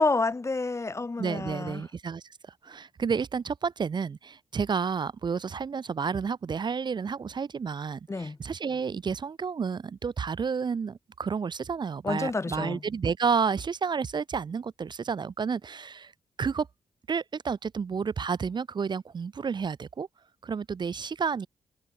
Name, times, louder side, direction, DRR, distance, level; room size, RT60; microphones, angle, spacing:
voice 1, 0.0-1.8 8.1-8.4 12.0-12.8, left 3 dB, 30° left, 1.8 m, -28 dB
voice 2, 1.2-2.2 2.6-16.1 16.4-16.7 17.1-20.1 20.4-21.5, right 6 dB, 50° right, 0.8 m, -30 dB
cardioid pair, 75°, 10 cm